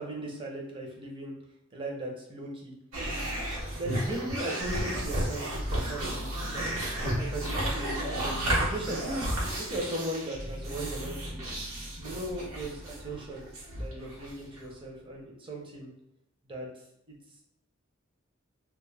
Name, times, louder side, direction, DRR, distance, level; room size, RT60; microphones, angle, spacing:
voice 1, 0.0-1.4 1.7-2.7 3.6-6.8 7.2-9.1 9.6-11.4 12.0-13.4 13.8-15.9 16.4-16.7, right 1 dB, 25° right, -1 dB, 0.6 m, -38 dB
sound 1, 2.9-14.7, right 1 dB, 80° right, 0.9 m, -32 dB
2.2 x 2.1 x 3.2 m, 0.84 s
head